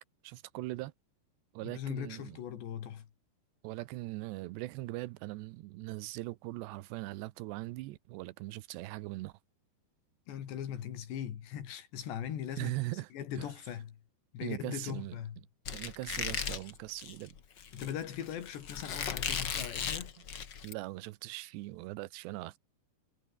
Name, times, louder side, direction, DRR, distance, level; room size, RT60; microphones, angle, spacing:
voice 1, 0.2-0.9 1.5-2.4 3.6-9.3 12.6-13.1 13.4-13.5 14.4-15.2 15.7-17.4 20.6-22.6, right 18 dB, 85° right, 3.0 m, -40 dB
voice 2, 1.6-3.1 10.3-12.7 13.1-14.0 14.3-15.4 17.7-20.1, left 9 dB, 90° left, 4.8 m, -40 dB
Squeak, 15.6-20.7, left 7 dB, 65° left, 1.1 m, -37 dB
omnidirectional pair, 4.8 m